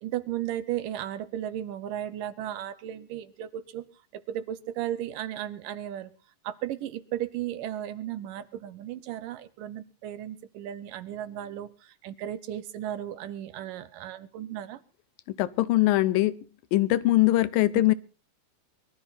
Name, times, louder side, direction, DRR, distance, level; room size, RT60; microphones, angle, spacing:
voice 1, 0.0-3.9 4.1-6.1 6.4-14.8 17.7-17.9, right 11 dB, 75° right, 14 dB, 2.7 m, -35 dB
voice 2, 15.3-16.3 16.7-17.9, left 16 dB, 85° left, 15 dB, 2.6 m, -22 dB
22.5 x 13.0 x 4.2 m, 0.37 s
omnidirectional pair, 4.0 m